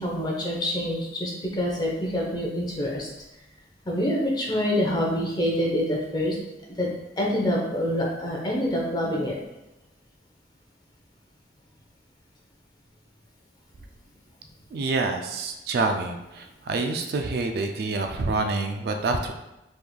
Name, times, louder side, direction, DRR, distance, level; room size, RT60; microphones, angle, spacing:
voice 1, 0.0-3.1 3.9-6.4 6.8-6.9 7.2-9.4, equal, 25° left, -2 dB, 0.6 m, -26 dB
voice 2, 14.7-19.3, right 3 dB, 60° right, 5 dB, 0.3 m, -27 dB
3.5 x 3.1 x 2.2 m, 0.94 s
head